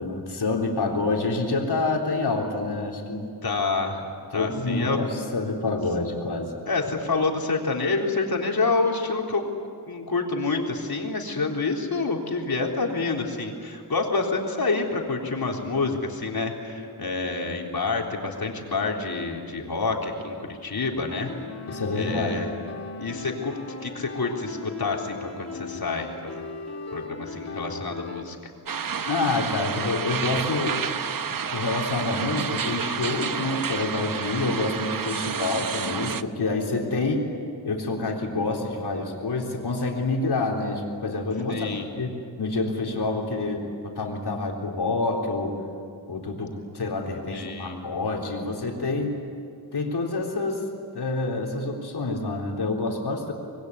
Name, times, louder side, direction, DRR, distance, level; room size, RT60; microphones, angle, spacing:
voice 1, 0.0-3.3 4.3-6.5 21.7-22.5 29.0-30.8 31.3-37.3 37.6-41.7 42.0-45.6 46.1-49.2 49.7-50.7 50.9-53.3, left 3 dB, 80° left, 1 dB, 3.8 m, -27 dB
voice 2, 3.4-5.1 6.7-9.4 9.9-21.3 21.9-22.5 23.0-26.5 26.9-28.4 35.2-35.6 41.5-41.9 47.3-47.8, left 3 dB, 65° left, 1 dB, 3.8 m, -28 dB
sound 1, 21.1-28.2, left 4 dB, 40° left, 2.3 m, -38 dB
sound 2, 28.7-36.2, right 7 dB, 55° right, 0.8 m, -30 dB
26.5 x 21.0 x 9.7 m, 2.3 s
wide cardioid pair, 75°, 39 cm